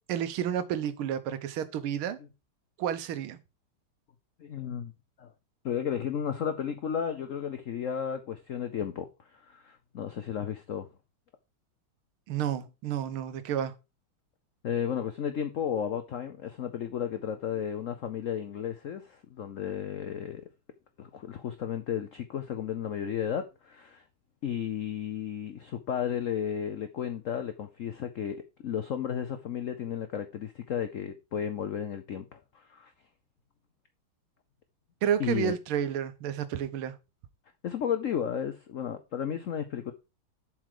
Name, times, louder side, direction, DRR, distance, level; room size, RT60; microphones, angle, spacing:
voice 1, 0.1-2.2 2.8-3.4 12.3-13.7 35.0-37.0, right 9 dB, 85° right, 1.7 m, -30 dB
voice 2, 4.4-4.9 5.2-5.3 5.6-10.9 14.6-20.4 21.0-24.0 24.4-32.9 35.2-35.6 37.6-39.9, left 8 dB, 85° left, 0.7 m, -33 dB
7.5 x 4.7 x 4.8 m
omnidirectional pair, 2.3 m